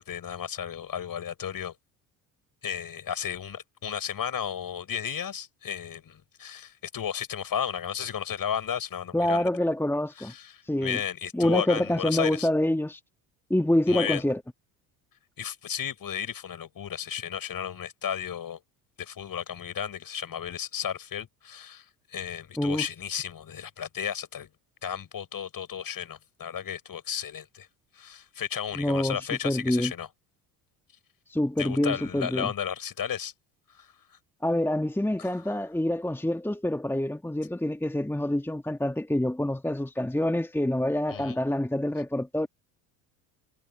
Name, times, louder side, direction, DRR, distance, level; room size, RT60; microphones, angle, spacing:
voice 1, 0.0-1.7 2.6-9.5 10.2-12.5 13.9-14.2 15.4-18.6 19.0-21.9 22.1-24.5 24.8-27.7 27.9-30.1 31.6-33.3 33.8-33.9 35.2-35.3 41.1-41.4, left 8 dB, 45° left, 5.9 m, -34 dB
voice 2, 9.1-10.3 10.6-11.0 11.3-13.0 13.5-14.4 22.6-22.9 28.8-29.9 31.3-32.5 34.4-42.5, left 1 dB, 5° left, 1.7 m, -26 dB
hypercardioid pair, 65°, 50 cm